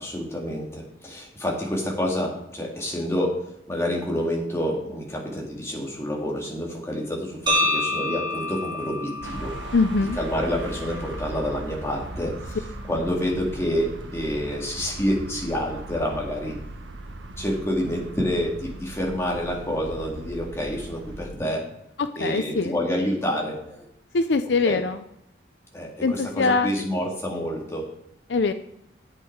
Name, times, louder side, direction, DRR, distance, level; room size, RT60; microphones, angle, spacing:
voice 1, 0.0-3.4 3.7-9.5 10.2-16.6 17.4-21.6 22.2-23.9 24.6-24.8 25.7-27.8, equal, 15° left, -2 dB, 2.3 m, -28 dB
sound 1, 7.5-11.5, left 1 dB, 25° right, 1.7 m, -29 dB
sound 2, 9.2-21.2, right 2 dB, 75° right, 1.1 m, -38 dB
voice 2, 9.7-10.2 22.0-22.7 24.1-25.0 26.0-26.7 28.3-28.5, left 3 dB, 65° left, 10 dB, 0.5 m, -22 dB
10.0 x 8.3 x 4.7 m, 0.78 s
head